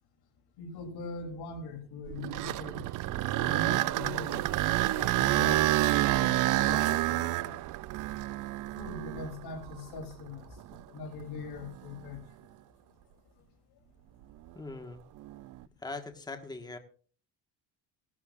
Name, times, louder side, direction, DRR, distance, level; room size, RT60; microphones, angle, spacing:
voice 1, 0.6-2.9 3.4-4.5 4.8-7.6 8.8-12.2, left 4 dB, 70° left, 3 dB, 3.3 m, -42 dB
sound 1, 2.1-10.1 10.7-10.8 11.5-11.7 15.2-15.6, right 16 dB, 55° right, 0.4 m, -29 dB
sound 2, 2.8-7.3, right 15 dB, 90° right, 1.3 m, -50 dB
voice 2, 14.5-15.0 15.8-16.8, left 3 dB, 10° left, 6 dB, 1.6 m, -41 dB
18.0 x 12.5 x 2.5 m, 0.41 s
cardioid pair, 125°, 40 cm